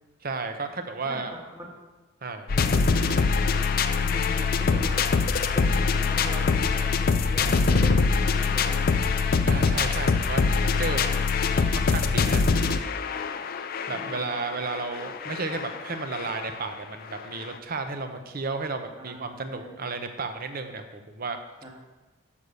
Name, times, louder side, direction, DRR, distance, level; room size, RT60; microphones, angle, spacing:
voice 1, 0.2-1.3 2.2-2.5 9.5-11.3 11.7-12.5 13.9-21.4, right 3 dB, 40° right, 8 dB, 0.6 m, -33 dB
voice 2, 1.1-1.7 3.8-5.0 5.5-8.9 13.9-14.3 19.0-19.8 21.6-21.7, equal, 15° right, -2 dB, 1.3 m, -41 dB
sound 1, 2.5-16.6 17.2-17.3 17.4-17.5, left 4 dB, 40° left, 0.4 m, -24 dB
6.4 x 5.4 x 6.7 m, 1.2 s
head